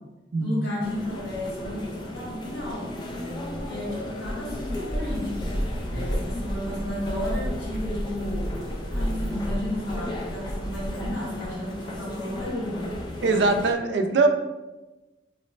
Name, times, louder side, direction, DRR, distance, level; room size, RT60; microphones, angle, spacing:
voice 1, 0.4-2.9 3.6-5.5 5.9-8.5 8.9-12.9 13.2-13.5, left 1 dB, 70° left, -5 dB, 1.2 m, -33 dB
sound 1, 0.8-13.7, left 1 dB, 25° left, 0.3 m, -36 dB
sound 2, 4.2-11.2, equal, 40° left, 1.2 m, -32 dB
voice 2, 13.2-14.3, right 3 dB, 70° right, 6 dB, 0.4 m, -22 dB
3.1 x 2.0 x 4.1 m, 1.1 s
head